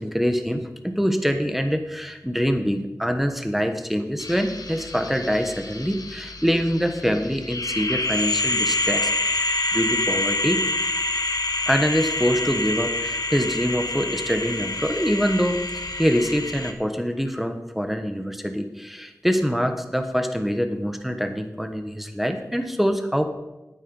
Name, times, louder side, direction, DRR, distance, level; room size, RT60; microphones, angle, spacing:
voice 1, 0.0-9.1 9.7-10.7 11.7-23.2, equal, 5° right, 7 dB, 1.2 m, -24 dB
sound 1, 4.2-16.7, left 2 dB, 85° left, 0.9 m, -27 dB
9.1 x 8.9 x 5.5 m, 0.99 s
wide cardioid pair, 45°, 6 cm